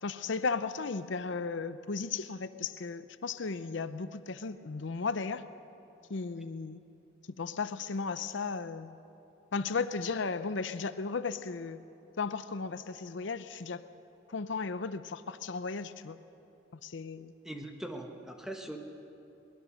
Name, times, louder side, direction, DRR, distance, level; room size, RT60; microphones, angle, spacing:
voice 1, 0.0-5.4 6.1-6.8 7.4-9.0 9.5-11.8 12.2-13.8 14.3-16.2 16.8-17.3, left 4 dB, 75° left, 12 dB, 0.6 m, -35 dB
voice 2, 17.4-18.8, right 1 dB, 5° right, 2 dB, 1.4 m, -41 dB
22.5 x 20.0 x 6.4 m, 2.8 s
head